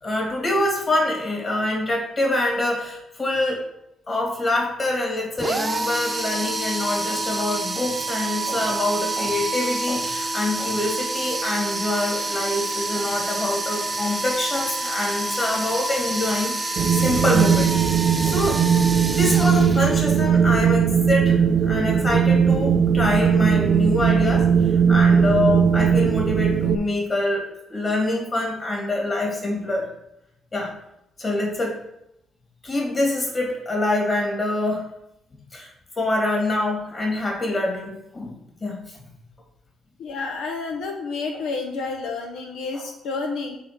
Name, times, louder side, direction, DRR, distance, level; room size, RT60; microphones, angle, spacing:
voice 1, 0.0-3.6 4.1-17.7 18.2-18.6 19.0-21.4 21.7-27.4 27.7-29.9 30.5-30.7 31.2-31.8 32.6-34.8 35.5-35.7 36.0-38.8, left 2 dB, 35° left, -1 dB, 2.7 m, -25 dB
sound 1, 5.4-20.3, right 2 dB, 20° right, 0.8 m, -28 dB
Wind, 16.8-26.8, right 7 dB, 60° right, 0.5 m, -19 dB
voice 2, 40.0-43.6, left 4 dB, 85° left, 2 dB, 0.9 m, -30 dB
5.5 x 4.2 x 6.0 m, 0.82 s
cardioid pair, 90°, 0 cm